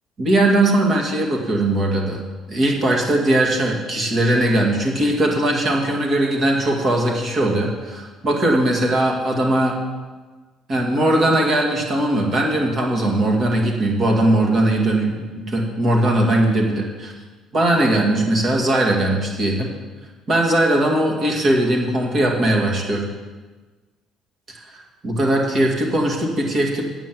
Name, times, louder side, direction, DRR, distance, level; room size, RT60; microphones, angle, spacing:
voice 1, 0.2-2.2 2.5-9.7 10.7-17.1 17.5-19.7 20.3-23.1 24.5-26.8, right 1 dB, 35° right, 0 dB, 2.2 m, -19 dB
9.0 x 7.5 x 7.6 m, 1.3 s
cardioid pair, 150°, 0 cm